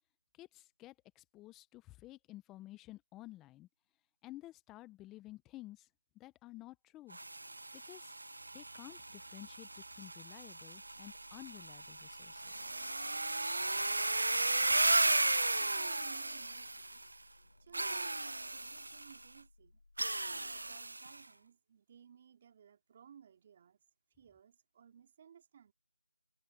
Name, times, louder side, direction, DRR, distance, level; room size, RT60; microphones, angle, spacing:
voice 1, 0.4-3.7 4.2-5.9 6.1-7.2 7.7-8.1 8.5-9.7 10.0-12.7, left 16 dB, 5° left, 0.9 m, -53 dB
sound 1, 7.1-17.1 17.7-19.2 20.0-21.2, right 2 dB, 75° right, 0.4 m, -35 dB
sound 2, 8.4-14.6, right 4 dB, 45° right, 2.7 m, -67 dB
sound 3, 10.8-20.8, left 2 dB, 65° left, 5.9 m, -66 dB
voice 2, 14.2-14.7 15.4-19.8 20.3-23.8 24.2-25.7, right 8 dB, 25° right, 3.0 m, -60 dB
figure-of-eight pair, 170°, 0 cm